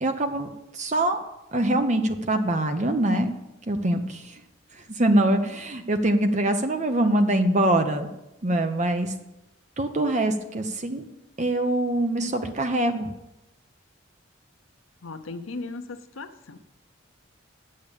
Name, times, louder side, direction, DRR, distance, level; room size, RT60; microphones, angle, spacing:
voice 1, 0.0-1.2 1.5-3.3 3.7-4.3 5.0-8.1 8.4-9.1 9.8-11.0 11.4-13.1, right 1 dB, 35° right, 7 dB, 0.8 m, -24 dB
voice 2, 15.0-16.6, left 3 dB, 80° left, 9 dB, 0.8 m, -37 dB
8.7 x 6.7 x 7.3 m, 0.92 s
head